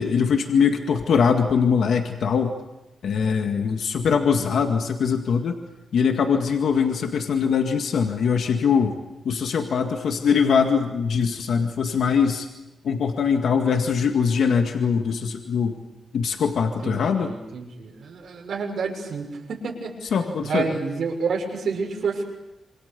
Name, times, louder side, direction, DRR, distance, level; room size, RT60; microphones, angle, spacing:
voice 1, 0.0-2.6 3.0-5.6 5.9-9.0 9.2-12.5 12.8-15.8 16.1-17.3 20.1-20.7, left 6 dB, 80° left, 4 dB, 2.0 m, -22 dB
voice 2, 16.8-20.0 20.4-22.2, right 5 dB, 80° right, 1 dB, 6.4 m, -29 dB
27.5 x 26.5 x 7.0 m, 0.99 s
wide cardioid pair, 165°, 0 cm